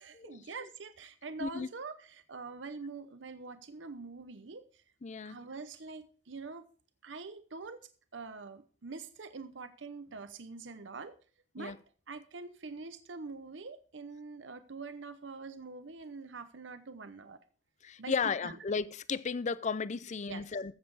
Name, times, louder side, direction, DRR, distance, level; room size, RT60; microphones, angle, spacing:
voice 1, 0.0-4.8 5.2-6.7 7.0-11.2 11.5-11.8 12.1-17.4 18.0-18.6 20.3-20.4, right 4 dB, 85° right, 0.9 m, -45 dB
voice 2, 5.0-5.4 11.6-11.8 17.8-20.7, left 5 dB, 40° left, 0.5 m, -34 dB
14.5 x 7.5 x 4.8 m
head